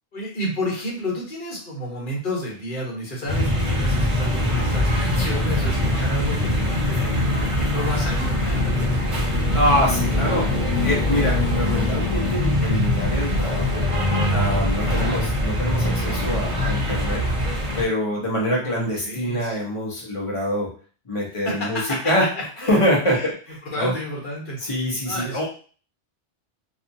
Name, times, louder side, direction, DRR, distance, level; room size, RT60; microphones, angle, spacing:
voice 1, 0.1-9.0 14.7-15.2 16.1-16.2 18.6-19.6 21.4-22.8 23.1-23.3 23.7-24.6 25.0-25.4, equal, 45° left, -4 dB, 1.2 m, -31 dB
sound 1, 3.3-17.8, left 1 dB, 35° right, 0.7 m, -22 dB
voice 2, 9.5-10.5 10.8-13.9 14.3-17.2 17.7-20.7 21.1-22.3 22.6-23.9 24.6-25.4, equal, 30° left, -3 dB, 0.8 m, -25 dB
2.6 x 2.4 x 2.6 m, 0.40 s
omnidirectional pair, 1.2 m